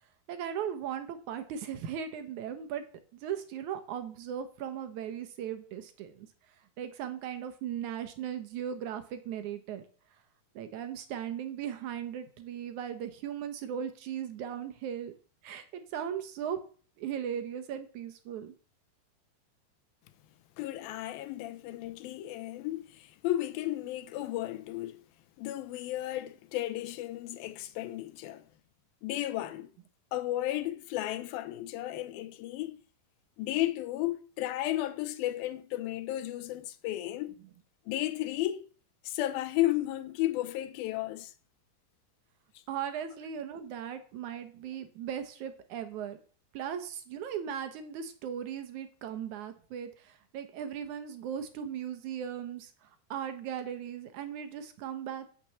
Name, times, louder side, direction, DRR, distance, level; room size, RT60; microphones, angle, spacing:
voice 1, 0.3-2.9 3.2-9.8 10.6-15.1 15.4-16.6 17.0-18.5 42.7-46.2 46.5-55.3, right 9 dB, 70° right, 1.9 m, -38 dB
voice 2, 20.6-25.0 25.4-28.5 29.0-29.7 30.1-32.8 33.4-37.4 37.9-38.7 39.0-41.3, left 15 dB, 80° left, 2.5 m, -33 dB
9.0 x 6.8 x 7.0 m
omnidirectional pair, 4.3 m